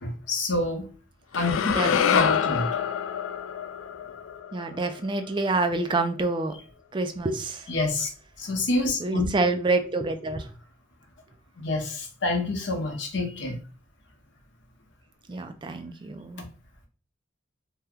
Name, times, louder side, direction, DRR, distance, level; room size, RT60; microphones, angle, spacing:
voice 1, 0.0-0.9 1.3-2.7 7.7-8.1 8.4-9.3 11.6-13.6 16.4-16.5, left 2 dB, 65° left, 3 dB, 0.8 m, -28 dB
sound 1, 1.3-5.6, left 8 dB, 85° left, 0.3 m, -27 dB
voice 2, 1.6-2.5 4.5-6.5 6.9-7.7 9.0-10.5 15.3-16.5, right 3 dB, 25° right, 7 dB, 0.3 m, -27 dB
2.8 x 2.1 x 3.6 m, 0.37 s
head